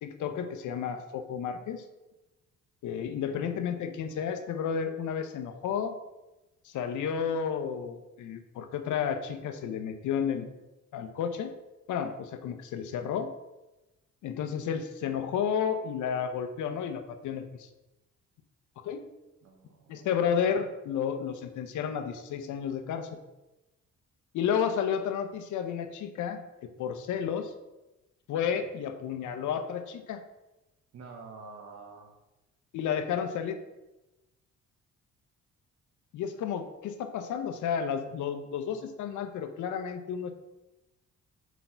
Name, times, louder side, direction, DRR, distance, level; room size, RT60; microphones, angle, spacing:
voice 1, 0.0-1.8 2.8-6.0 6.6-10.5 10.9-11.5 11.9-13.3 14.2-17.7 18.8-19.1 19.9-23.2 24.3-27.5 28.3-30.2 32.7-33.6 36.1-40.3, left 7 dB, 75° left, 8 dB, 0.8 m, -32 dB
voice 2, 3.2-3.5 19.4-20.7 30.9-32.1, right 4 dB, 60° right, 1 dB, 1.0 m, -48 dB
4.6 x 4.2 x 5.7 m, 1.0 s
cardioid pair, 90°, 30 cm